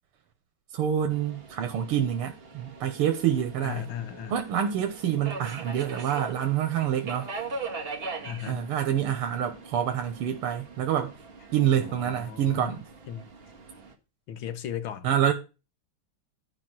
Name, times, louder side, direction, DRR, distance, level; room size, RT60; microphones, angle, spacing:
voice 1, 0.7-3.8 4.3-7.3 8.5-11.2 11.5-12.9 15.0-15.3, right 10 dB, 90° right, 1.9 m, -27 dB
Subway metro underground, 1.1-13.9, right 4 dB, 30° right, 1.5 m, -41 dB
voice 2, 3.6-4.3 8.2-8.6 11.7-12.7 13.1-13.3 14.3-15.1, left 9 dB, 65° left, 1.8 m, -36 dB
11.5 x 4.9 x 6.2 m
omnidirectional pair, 2.4 m